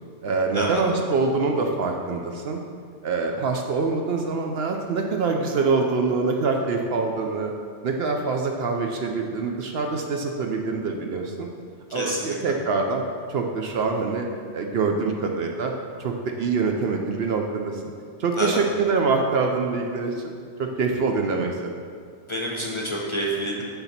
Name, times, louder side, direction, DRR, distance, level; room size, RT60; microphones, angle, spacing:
voice 1, 0.2-2.6 3.0-7.5 7.8-11.5 11.9-13.0 13.3-14.3 14.5-15.7 16.0-17.8 18.2-20.3 20.6-21.8, right 4 dB, 65° right, 2 dB, 0.8 m, -25 dB
voice 2, 11.9-12.4 18.3-18.6 22.3-23.6, equal, 30° left, -3 dB, 0.7 m, -28 dB
6.7 x 4.0 x 5.7 m, 2.1 s
omnidirectional pair, 1.2 m